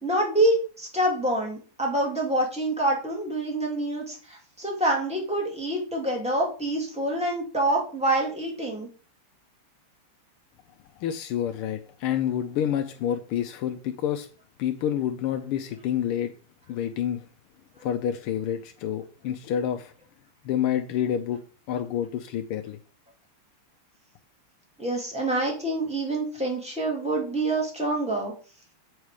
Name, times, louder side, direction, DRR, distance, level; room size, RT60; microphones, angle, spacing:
voice 1, 0.0-8.9 24.8-28.3, right 1 dB, 5° right, 2.4 m, -26 dB
voice 2, 11.0-14.3 14.6-16.3 16.7-17.2 17.8-19.9 20.4-21.4 21.7-22.8, left 10 dB, 85° left, 1.6 m, -28 dB
8.2 x 4.8 x 4.8 m
omnidirectional pair, 2.4 m